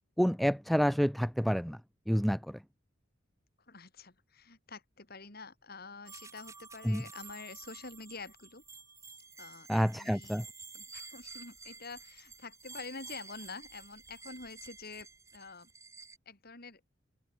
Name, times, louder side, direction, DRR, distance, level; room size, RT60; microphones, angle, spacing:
voice 1, 0.2-1.8 2.1-2.6 6.9-7.0 9.7-10.4, equal, ahead, 0.3 m, -28 dB
voice 2, 3.7-8.6 9.4-10.4 10.7-15.7 16.3-16.8, left 4 dB, 55° left, 7.0 m, -47 dB
sound 1, 6.1-16.2, right 4 dB, 15° right, 4.4 m, -51 dB
head